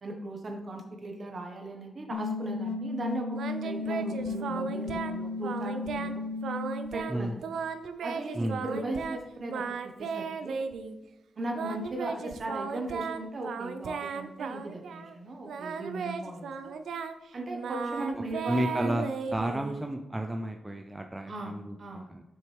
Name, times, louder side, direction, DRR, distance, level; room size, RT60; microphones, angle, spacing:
voice 1, 0.0-6.2 6.9-7.3 8.0-10.6 11.4-16.7 17.3-19.0 21.3-22.1, right 2 dB, 40° right, 3 dB, 1.4 m, -38 dB
sound 1, 2.1-7.1, left 3 dB, 65° left, 0.9 m, -35 dB
Singing, 3.3-5.2 5.4-6.1 6.4-7.2 7.4-9.2 9.5-10.9 11.5-15.1 15.5-19.9, right 5 dB, 90° right, 0.6 m, -36 dB
voice 2, 8.3-8.6 18.1-19.1 19.3-22.2, right 1 dB, 10° right, 4 dB, 0.5 m, -32 dB
7.6 x 6.3 x 3.5 m, 0.99 s
wide cardioid pair, 125°, 0 cm